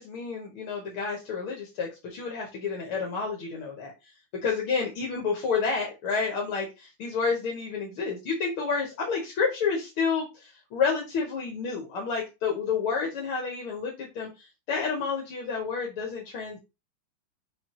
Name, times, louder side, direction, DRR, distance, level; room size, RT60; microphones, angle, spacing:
voice 1, 0.0-3.9 4.4-16.6, left 5 dB, 75° left, 0 dB, 2.2 m, -30 dB
6.0 x 5.2 x 3.0 m, 0.26 s
omnidirectional pair, 2.4 m